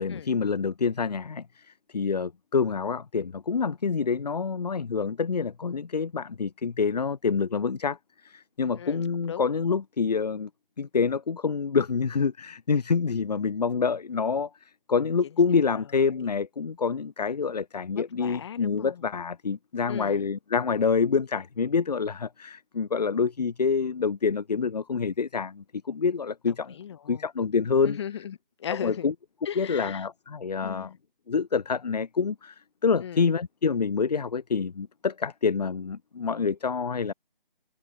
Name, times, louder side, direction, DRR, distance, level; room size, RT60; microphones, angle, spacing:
voice 1, 0.0-8.0 8.2-10.5 10.8-14.5 14.9-26.7 27.1-28.0 28.8-29.1 29.6-30.9 31.3-37.1, left 5 dB, 45° left, 0.9 m, -27 dB
voice 2, 8.8-9.5 16.2-16.3 17.9-19.0 19.9-20.3 26.5-27.2 27.8-29.1 29.4-30.0 30.6-31.0 33.0-33.3, left 9 dB, 30° left, 6.3 m, -38 dB
figure-of-eight pair, 155°, 29 cm